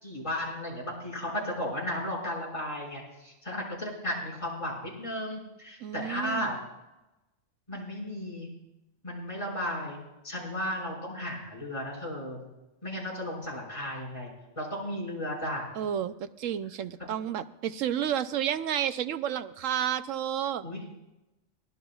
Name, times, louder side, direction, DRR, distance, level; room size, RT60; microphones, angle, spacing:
voice 1, 0.0-6.6 7.7-8.5 9.0-12.4 12.8-15.7 17.0-17.1 20.6-20.8, left 1 dB, 25° left, -4 dB, 5.7 m, -34 dB
voice 2, 5.8-6.5 15.8-20.6, right 10 dB, 75° right, 12 dB, 1.0 m, -31 dB
23.0 x 17.5 x 2.4 m, 0.98 s
omnidirectional pair, 1.4 m